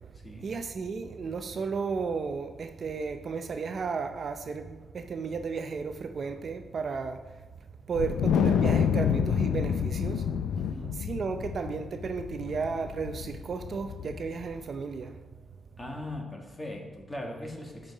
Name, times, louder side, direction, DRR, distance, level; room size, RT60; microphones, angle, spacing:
voice 1, 0.4-7.2 7.9-10.3 10.8-15.2, right 5 dB, 50° right, 0.5 m, -34 dB
Wind, 8.0-14.5, left 7 dB, 85° left, 0.4 m, -28 dB
voice 2, 10.6-11.0 15.8-17.9, left 1 dB, 15° left, 1.6 m, -39 dB
14.0 x 5.5 x 4.1 m
cardioid pair, 120°, 0 cm